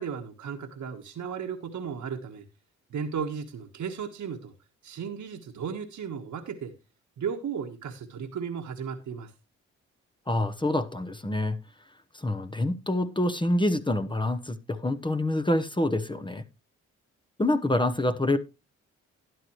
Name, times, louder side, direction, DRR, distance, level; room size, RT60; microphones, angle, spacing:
voice 1, 0.0-2.4 2.9-4.5 4.8-6.7 7.2-9.3, right 7 dB, 60° right, 1.5 m, -35 dB
voice 2, 10.3-11.6 12.1-16.4 17.4-18.4, left 1 dB, 15° left, 1.0 m, -26 dB
12.5 x 10.0 x 3.1 m
supercardioid pair, 50°, 33 cm